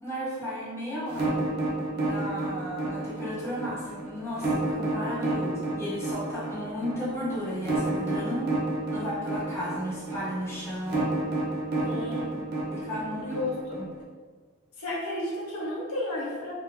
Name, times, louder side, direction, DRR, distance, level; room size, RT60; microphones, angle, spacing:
voice 1, 0.0-1.4 2.0-8.5 8.9-11.1 12.7-13.4 13.7-13.9, equal, 10° left, -9 dB, 1.1 m, -34 dB
sound 1, 1.1-14.0, right 2 dB, 45° right, 0.7 m, -30 dB
voice 2, 11.8-12.4 13.2-13.8 14.8-16.5, left 1 dB, 90° left, -4 dB, 0.9 m, -32 dB
2.9 x 2.4 x 3.5 m, 1.5 s
head